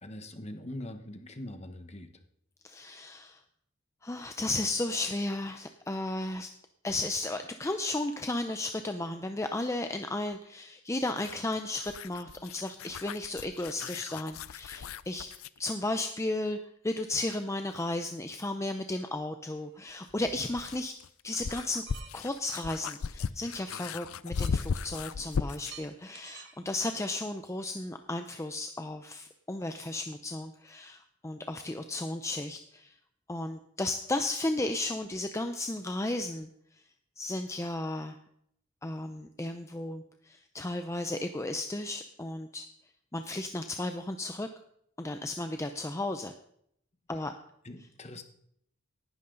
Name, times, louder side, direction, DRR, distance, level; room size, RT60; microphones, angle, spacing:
voice 1, 0.0-2.1 47.1-47.2 47.6-48.2, left 1 dB, 30° left, 8 dB, 1.2 m, -42 dB
voice 2, 2.6-3.4 4.0-6.5 6.8-15.3 15.6-16.6 16.8-20.9 21.2-21.8 22.1-32.9 33.3-36.5 37.2-38.2 38.8-42.7 43.1-44.5 45.0-46.3 47.1-47.3, left 2 dB, 15° left, 7 dB, 0.5 m, -34 dB
sound 1, 11.1-15.6 17.9-18.0 20.0-25.8, left 5 dB, 70° left, 0.5 m, -37 dB
sound 2, 19.6-20.6 21.6-22.1 22.4-22.7 23.7-24.8 25.3-26.6, right 6 dB, 55° right, 1.5 m, -50 dB
18.0 x 11.0 x 3.9 m, 0.71 s
head